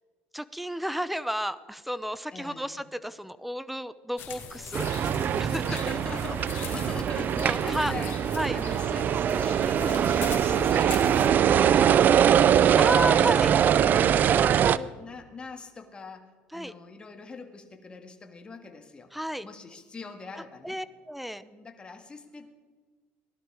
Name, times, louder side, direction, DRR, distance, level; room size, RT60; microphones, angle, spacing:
voice 1, 0.3-5.7 7.4-7.9 8.4-8.6 12.8-13.5 16.5-16.7 19.1-19.5 20.6-21.4, equal, ahead, 15 dB, 0.6 m, -32 dB
voice 2, 2.3-2.8 5.7-8.2 8.5-12.4 12.8-13.2 13.8-19.1 19.4-20.8 21.4-22.5, left 4 dB, 20° left, 5 dB, 1.8 m, -43 dB
sound 1, 4.2-11.3, left 6 dB, 60° left, 2.6 m, -40 dB
sound 2, 4.7-14.8, right 9 dB, 45° right, 0.4 m, -22 dB
17.5 x 12.0 x 4.8 m, 1.4 s
cardioid pair, 115°, 4 cm